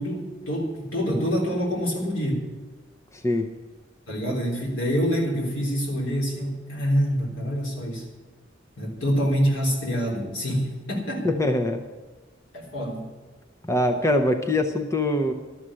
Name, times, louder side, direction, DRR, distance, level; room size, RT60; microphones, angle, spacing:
voice 1, 0.0-2.4 4.1-8.1 8.8-11.3 12.5-13.1, equal, 90° left, -2 dB, 3.7 m, -26 dB
voice 2, 3.1-3.5 11.2-11.8 13.6-15.3, left 1 dB, 15° left, 5 dB, 0.7 m, -23 dB
12.5 x 7.6 x 9.7 m, 1.3 s
head